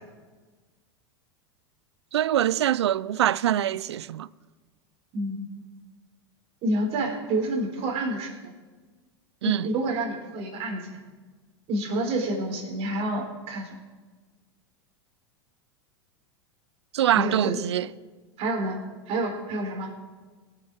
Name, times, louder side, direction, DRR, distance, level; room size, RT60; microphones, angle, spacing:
voice 1, 2.1-4.3 9.4-9.7 16.9-17.9, right 11 dB, 80° right, 0.4 m, -24 dB
voice 2, 5.1-5.6 6.6-8.3 9.4-11.0 11.7-13.7 17.1-17.6 18.4-18.8 19.1-19.9, right 1 dB, 45° right, 4.1 m, -28 dB
23.0 x 7.8 x 4.8 m
hypercardioid pair, 95°, 14 cm